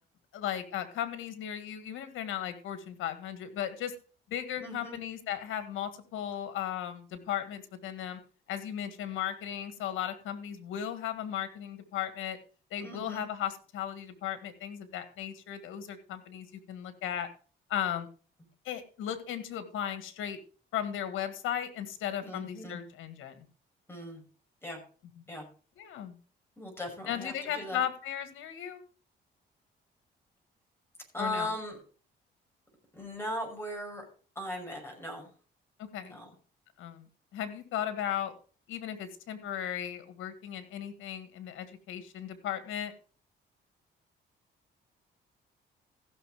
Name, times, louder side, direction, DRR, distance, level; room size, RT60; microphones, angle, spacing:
voice 1, 0.3-3.9 4.3-8.2 8.5-12.4 12.7-17.3 17.7-18.1 18.6-20.4 20.7-23.5 25.8-26.1 27.1-28.8 31.2-31.5 35.8-36.2 36.8-37.1 37.3-38.3 38.7-42.9, left 10 dB, 85° left, 10 dB, 1.7 m, -36 dB
voice 2, 4.6-5.0 12.8-13.2 22.2-22.8 23.9-24.2 24.6-24.8 25.3-25.4 26.6-27.8 31.1-31.8 32.9-34.0 34.4-35.3 36.0-36.3, left 1 dB, 10° left, 1 dB, 5.6 m, -38 dB
15.0 x 6.4 x 4.9 m, 0.39 s
cardioid pair, 90°, 20 cm